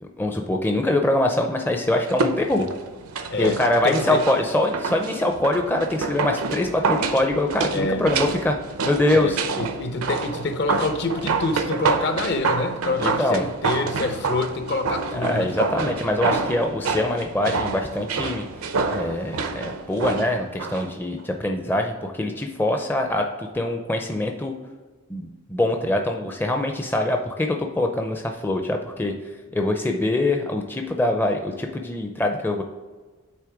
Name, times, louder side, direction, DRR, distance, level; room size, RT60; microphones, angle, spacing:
voice 1, 0.0-2.7 3.4-8.6 8.8-9.4 13.0-13.4 15.1-18.4 18.9-24.5 25.1-29.1 29.5-32.6, left 1 dB, 10° left, 3 dB, 0.4 m, -24 dB
sound 1, 2.1-20.9 21.2-21.3, right 4 dB, 80° right, 0.6 m, -28 dB
voice 2, 3.3-4.2 7.7-8.1 9.1-15.5, left 2 dB, 50° left, 8 dB, 0.7 m, -27 dB
8.5 x 3.3 x 4.6 m, 1.3 s
head